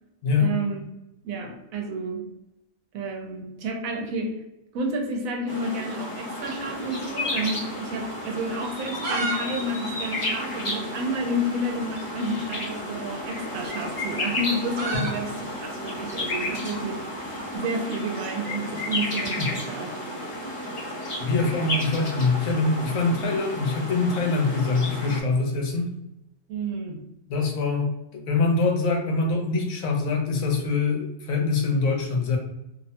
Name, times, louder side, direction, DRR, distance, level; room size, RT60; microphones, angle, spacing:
voice 1, 0.4-0.8 1.2-2.3 2.9-4.4 4.7-17.0 17.5-20.2 26.5-27.0, right 1 dB, 90° right, 3 dB, 1.0 m, -30 dB
sound 1, 5.5-25.2, left 1 dB, 40° left, 0.5 m, -32 dB
sound 2, 6.5-8.1 8.6-9.4 9.6-9.7 10.0-10.1 10.7-10.8 11.9-12.1 13.3-17.5, right 2 dB, 45° right, 0.7 m, -33 dB
voice 2, 21.2-25.9 27.3-32.4, left 3 dB, 80° left, 2 dB, 1.0 m, -24 dB
2.7 x 2.1 x 2.6 m, 0.89 s
omnidirectional pair, 1.4 m